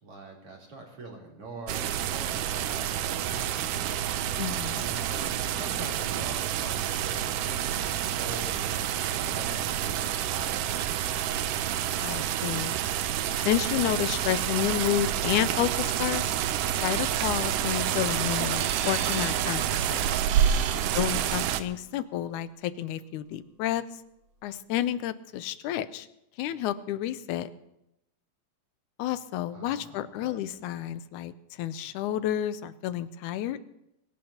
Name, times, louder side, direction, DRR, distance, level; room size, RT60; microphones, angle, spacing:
voice 1, 0.0-4.4 4.7-8.7 9.1-11.3 20.7-21.1 29.5-30.4, right 2 dB, 45° right, -2 dB, 4.4 m, -44 dB
sound 1, 1.7-21.6, right 10 dB, 90° right, 2.3 m, -28 dB
voice 2, 4.4-4.8 12.0-12.8 13.5-16.3 16.8-19.6 19.9-20.1 20.9-23.8 24.4-26.1 26.4-27.5 29.0-33.6, left 12 dB, 80° left, 13 dB, 2.0 m, -30 dB
sound 2, 18.6-21.6, right 8 dB, 70° right, 2.3 m, -38 dB
24.5 x 17.0 x 2.9 m, 0.83 s
omnidirectional pair, 3.7 m